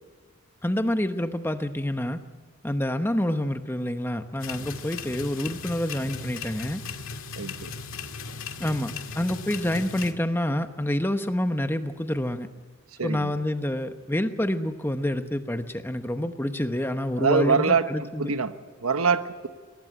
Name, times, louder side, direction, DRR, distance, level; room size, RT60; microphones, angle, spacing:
voice 1, 0.6-2.2 2.6-6.8 8.6-12.5 13.0-18.3, left 1 dB, 10° left, 8 dB, 0.9 m, -27 dB
sound 1, 4.4-10.1, left 4 dB, 70° left, 2.0 m, -37 dB
voice 2, 7.3-7.7 13.0-13.3 17.2-18.5 18.8-19.5, right 5 dB, 85° right, 9 dB, 1.2 m, -24 dB
22.5 x 19.0 x 9.1 m, 1.5 s
head